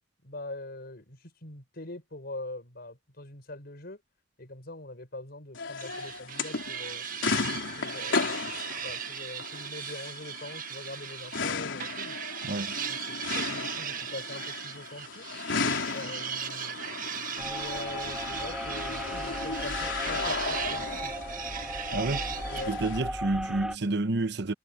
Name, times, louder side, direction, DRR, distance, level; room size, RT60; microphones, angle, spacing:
voice 1, 0.2-4.0 4.4-7.1 7.8-8.4 8.7-12.2 12.9-15.3 15.9-16.8 17.4-21.2 22.4-23.1 23.5-23.6, left 2 dB, 55° left, 6.1 m, -43 dB
sound 1, 5.5-23.0, left 4 dB, 85° left, 3.5 m, -35 dB
sound 2, 5.8-11.5 11.8-22.7, right 8 dB, 45° right, 1.4 m, -38 dB
voice 2, 12.4-12.7 21.9-22.2 22.7-24.5, right 2 dB, 65° right, 1.0 m, -29 dB
sound 3, 17.4-23.8, equal, 5° right, 1.8 m, -37 dB
head